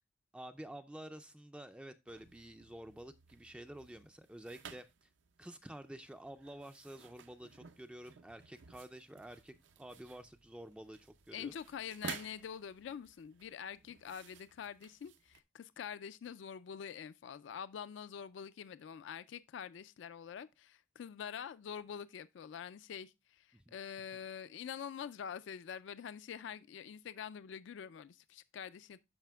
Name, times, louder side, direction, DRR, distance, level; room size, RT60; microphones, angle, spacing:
voice 1, 0.3-5.1 5.4-11.6 23.5-23.7, right 1 dB, 5° right, 0.3 m, -50 dB
sound 1, 2.1-15.4, right 6 dB, 70° right, 0.6 m, -54 dB
voice 2, 11.3-29.0, left 8 dB, 70° left, 0.3 m, -46 dB
13.5 x 4.9 x 2.2 m
head